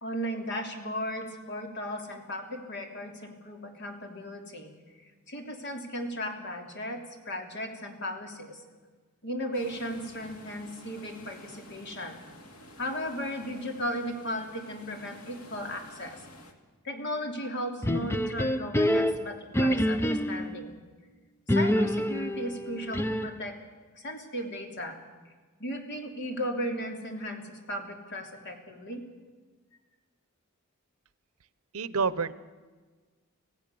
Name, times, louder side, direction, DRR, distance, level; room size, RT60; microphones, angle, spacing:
voice 1, 0.0-4.7 5.3-8.6 9.2-12.2 12.8-16.2 16.8-20.8 21.5-23.6 23.9-25.0 25.6-29.0, equal, 50° left, 3 dB, 3.1 m, -36 dB
sound 1, 9.5-16.5, left 1 dB, 85° left, 2.4 m, -51 dB
sound 2, 17.8-20.6 21.5-23.5, equal, 10° left, 0.6 m, -27 dB
voice 2, 31.7-32.3, right 5 dB, 75° right, 16 dB, 0.8 m, -28 dB
26.0 x 16.5 x 6.9 m, 1.4 s
head